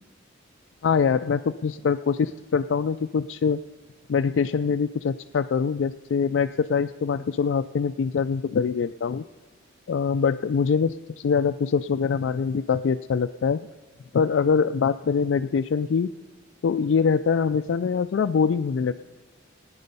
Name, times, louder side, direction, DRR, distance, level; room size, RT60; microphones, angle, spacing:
voice 1, 0.8-3.6 4.1-9.2 9.9-13.6 14.1-16.1 16.6-18.9, left 6 dB, 70° left, 8 dB, 0.3 m, -24 dB
17.5 x 9.7 x 5.4 m, 1.3 s
head